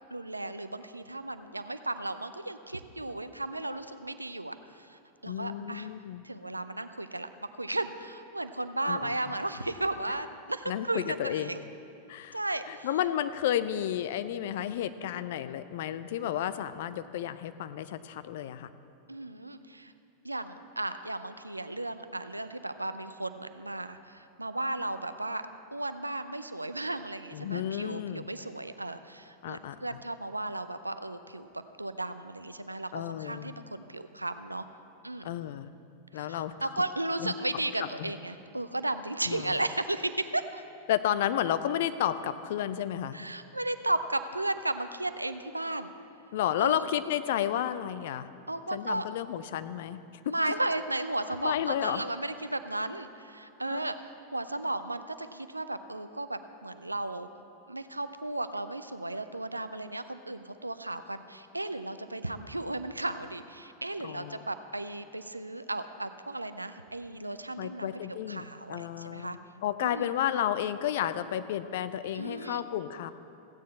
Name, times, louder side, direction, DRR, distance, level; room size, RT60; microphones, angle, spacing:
voice 1, 0.1-5.9 6.2-7.3 7.5-11.6 12.3-12.9 19.1-19.9 20.2-25.4 25.7-31.5 31.8-34.6 35.0-35.3 36.1-40.6 43.1-45.9 46.6-46.9 48.5-49.0 50.2-57.3 57.7-69.4 69.8-70.1 72.1-72.6, right 2 dB, 85° right, 11 dB, 0.4 m, -35 dB
voice 2, 5.3-6.2 8.8-9.1 10.7-11.5 12.1-12.4 12.7-18.7 27.3-28.3 29.4-30.0 32.9-33.5 35.2-35.7 36.1-36.5 37.2-37.3 37.8-38.1 39.3-39.6 40.9-43.2 46.3-48.3 48.7-50.0 51.4-52.0 53.7-53.8 64.0-64.4 67.6-68.4 68.7-73.1, left 11 dB, 55° left, 13 dB, 0.4 m, -32 dB
15.5 x 9.2 x 4.2 m, 2.6 s
figure-of-eight pair, 90°, 0 cm